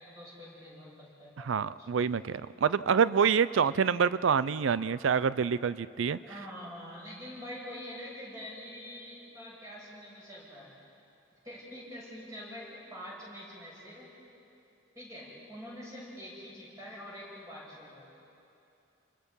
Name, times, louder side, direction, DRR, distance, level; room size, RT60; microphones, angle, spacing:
voice 1, 0.0-1.5 1.8-1.9 6.2-10.7 11.4-14.1 14.9-18.1, left 1 dB, 15° right, -6 dB, 7.6 m, -45 dB
voice 2, 1.4-6.2, right 6 dB, 85° right, 16 dB, 0.4 m, -27 dB
29.5 x 22.0 x 5.5 m, 2.7 s
head